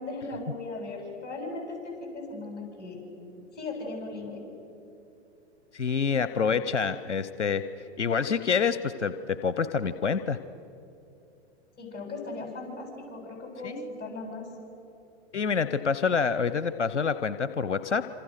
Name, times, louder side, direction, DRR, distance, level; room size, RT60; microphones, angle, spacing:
voice 1, 0.0-3.0 3.5-4.4 11.8-14.4, left 2 dB, 30° left, 1 dB, 7.9 m, -37 dB
voice 2, 5.7-7.6 8.0-10.4 13.6-13.9 15.3-18.1, left 6 dB, 90° left, 13 dB, 0.8 m, -27 dB
27.0 x 27.0 x 6.6 m, 2.7 s
hypercardioid pair, 110°, 34 cm